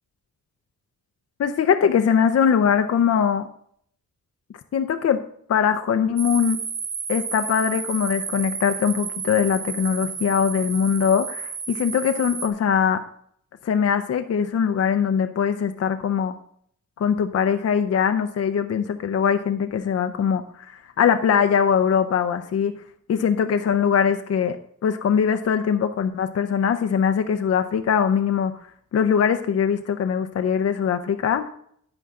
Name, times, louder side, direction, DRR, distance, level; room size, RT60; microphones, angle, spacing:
voice 1, 1.4-3.5 4.7-5.2 5.5-6.6 7.1-13.0 13.6-16.3 17.0-22.7 23.1-28.5 28.9-31.5, left 7 dB, 55° left, 7 dB, 0.6 m, -21 dB
sound 1, 6.2-12.5, right 6 dB, 75° right, 1.8 m, -32 dB
11.0 x 9.1 x 3.7 m, 0.65 s
wide cardioid pair, 145°, 30 cm